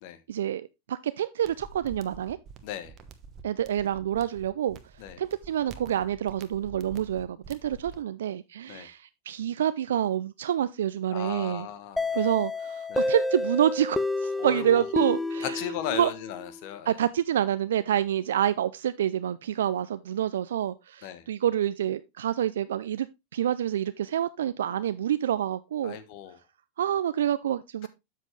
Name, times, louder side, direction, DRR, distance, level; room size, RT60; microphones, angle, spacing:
voice 1, 0.3-2.4 3.4-4.8 5.2-11.7 12.1-15.6 15.9-16.1 16.9-23.1 23.3-26.0 26.8-27.9, right 10 dB, 80° right, 0.4 m, -27 dB
sound 1, 1.4-8.0, right 5 dB, 40° right, 1.1 m, -48 dB
voice 2, 2.6-2.9 5.0-5.2 8.7-8.9 11.1-12.2 12.9-13.1 14.4-14.9 15.4-17.0 21.0-21.3 25.8-26.4 27.8-27.9, left 10 dB, 55° left, 1.2 m, -36 dB
sound 2, 12.0-16.6, left 2 dB, 5° left, 0.7 m, -30 dB
7.5 x 7.3 x 3.2 m
hypercardioid pair, 110°, 0 cm